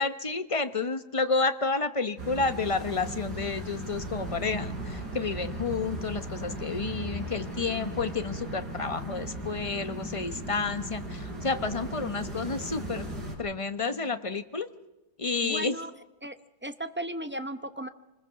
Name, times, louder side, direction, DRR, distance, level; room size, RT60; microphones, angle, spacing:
voice 1, 0.0-13.1 13.4-14.7 15.2-15.8, left 4 dB, 25° left, 10 dB, 0.7 m, -30 dB
sound 1, 2.2-13.4, right 1 dB, 70° right, 5.9 m, -37 dB
sound 2, 8.4-14.4, left 11 dB, 65° left, 6.7 m, -55 dB
voice 2, 15.4-15.9 16.2-16.4 16.6-17.9, right 1 dB, 15° right, 9 dB, 0.4 m, -35 dB
26.5 x 21.0 x 5.8 m, 1.0 s
omnidirectional pair, 1.8 m